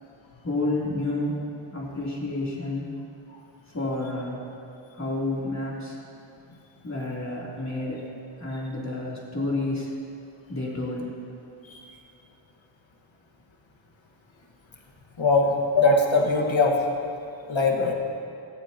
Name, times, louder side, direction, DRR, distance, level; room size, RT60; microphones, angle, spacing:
voice 1, 0.4-2.9 3.7-4.4 4.9-6.0 6.8-8.0 8.4-9.9 10.5-11.1, left 2 dB, 35° left, -5 dB, 3.4 m, -30 dB
voice 2, 15.2-16.8 17.5-17.9, left 3 dB, 65° left, 1 dB, 1.8 m, -21 dB
16.5 x 15.0 x 3.0 m, 2.7 s
wide cardioid pair, 60°, 49 cm